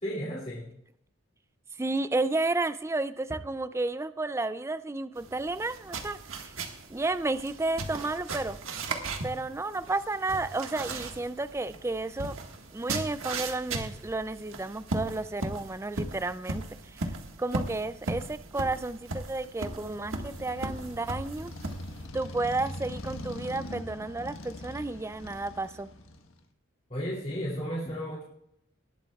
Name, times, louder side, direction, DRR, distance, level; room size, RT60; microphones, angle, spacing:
voice 1, 0.0-0.7 26.9-28.2, equal, 35° left, -6 dB, 2.7 m, -33 dB
voice 2, 1.8-6.5 6.9-8.6 9.2-12.4 12.7-17.0 17.4-21.5 22.1-25.9, right 2 dB, 15° right, 13 dB, 0.3 m, -32 dB
sound 1, 5.2-22.1, right 2 dB, 85° right, 1.6 m, -37 dB
Motorcycle, 19.8-26.4, left 1 dB, 80° left, 1.4 m, -42 dB
19.5 x 12.0 x 2.4 m, 0.77 s
head